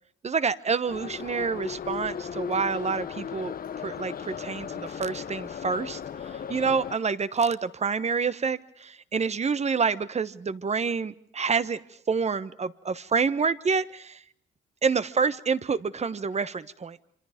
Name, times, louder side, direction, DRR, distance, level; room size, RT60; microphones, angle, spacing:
voice 1, 0.2-3.5 3.8-6.0 6.5-11.8 12.1-14.2 14.8-17.0, right 5 dB, 35° right, 15 dB, 1.2 m, -27 dB
Subway metro underground, 0.9-7.0, left 7 dB, 45° left, 1.0 m, -36 dB
27.0 x 25.5 x 5.2 m, 0.68 s
cardioid pair, 90°, 20 cm